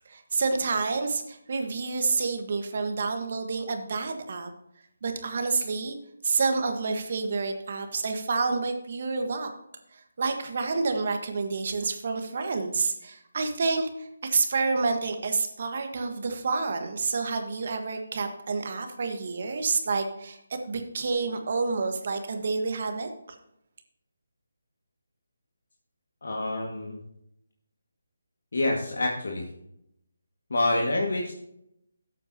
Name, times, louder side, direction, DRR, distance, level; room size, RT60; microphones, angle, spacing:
voice 1, 0.1-4.5 5.0-6.0 6.2-9.5 10.2-23.4, right 4 dB, 50° right, 6 dB, 1.4 m, -29 dB
voice 2, 26.2-27.0 28.5-29.5 30.5-31.3, left 2 dB, 70° left, -1 dB, 1.9 m, -27 dB
13.5 x 8.3 x 2.9 m, 0.78 s
figure-of-eight pair, 165°, 0 cm